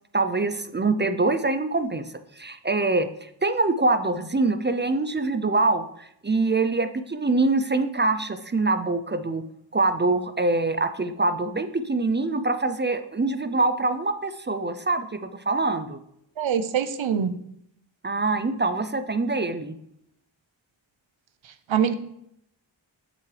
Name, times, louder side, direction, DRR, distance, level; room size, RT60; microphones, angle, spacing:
voice 1, 0.1-9.4 9.7-16.0 18.0-19.8, right 3 dB, 25° right, 10 dB, 0.4 m, -24 dB
voice 2, 16.4-17.3 21.7-21.9, right 8 dB, 75° right, 11 dB, 0.7 m, -23 dB
7.6 x 6.7 x 3.3 m, 0.75 s
wide cardioid pair, 85°, 47 cm